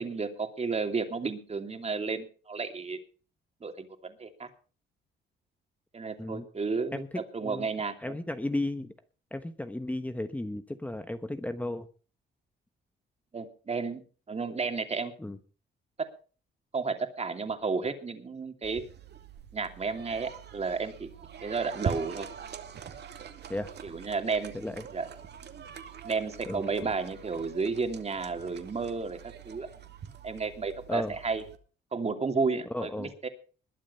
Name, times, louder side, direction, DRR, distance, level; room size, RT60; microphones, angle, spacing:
voice 1, 0.0-3.0 3.6-4.5 5.9-7.0 7.3-8.2 13.3-15.1 16.7-18.8 19.5-21.1 21.4-22.3 23.8-24.5 24.9-25.1 26.0-29.2 29.4-29.7 30.2-31.4 31.9-33.3, right 4 dB, 30° right, 7 dB, 2.8 m, -32 dB
voice 2, 8.0-8.9 9.3-11.9 15.2-15.4 23.5-23.7 24.5-24.8 26.5-26.9 30.9-31.1 32.7-33.1, left 1 dB, 5° left, 9 dB, 1.1 m, -34 dB
sound 1, 18.6-31.6, right 7 dB, 60° right, 2.3 m, -43 dB
21.0 x 7.4 x 5.5 m, 0.39 s
cardioid pair, 90°, 20 cm